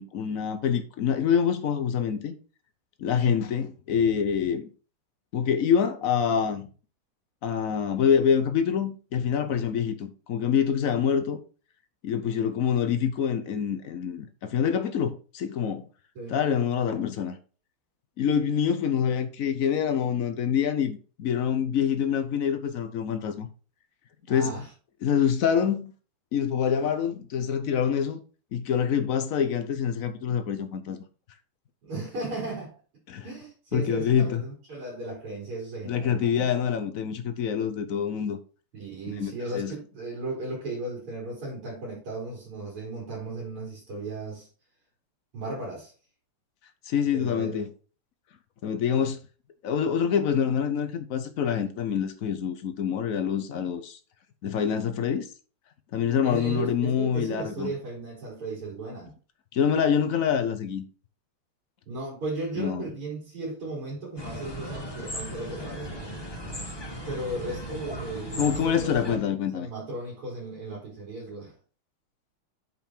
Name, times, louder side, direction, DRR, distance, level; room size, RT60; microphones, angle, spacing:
voice 1, 0.0-2.4 3.0-4.7 5.3-6.7 7.4-11.4 12.0-15.8 16.3-17.4 18.2-23.5 24.3-24.6 25.0-25.9 26.3-28.2 28.5-31.0 33.1-33.2 33.7-34.4 35.9-38.4 39.1-39.7 46.8-47.7 48.6-49.2 49.6-54.0 54.4-55.3 55.9-57.7 59.5-60.8 62.6-62.9 68.4-69.7, left 7 dB, 80° left, 0.7 m, -26 dB
voice 2, 24.3-24.7 31.8-32.7 33.2-36.5 38.7-44.5 45.3-45.9 47.1-47.7 56.2-59.1 61.9-66.2 67.0-71.5, right 2 dB, 85° right, 4.7 m, -36 dB
sound 1, 64.2-69.2, equal, 15° left, 1.1 m, -37 dB
8.2 x 5.4 x 4.3 m
omnidirectional pair, 2.4 m